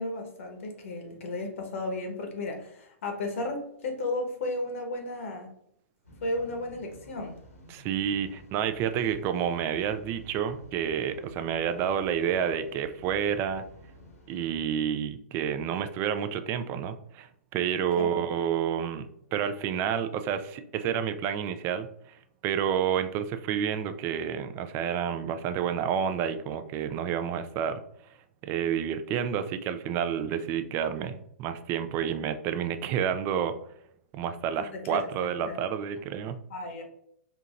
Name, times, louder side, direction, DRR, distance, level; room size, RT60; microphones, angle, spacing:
voice 1, 0.0-5.5 6.2-7.4 18.0-18.2 34.6-35.6 36.5-36.8, left 2 dB, 65° left, 4 dB, 1.0 m, -34 dB
sound 1, 6.0-14.8, equal, 85° left, 1.3 m, -51 dB
voice 2, 7.7-13.6 14.3-22.2 22.4-27.8 28.4-33.6 34.1-36.4, right 8 dB, 30° right, 10 dB, 0.3 m, -29 dB
4.4 x 2.8 x 2.5 m, 0.73 s
hypercardioid pair, 115°, 8 cm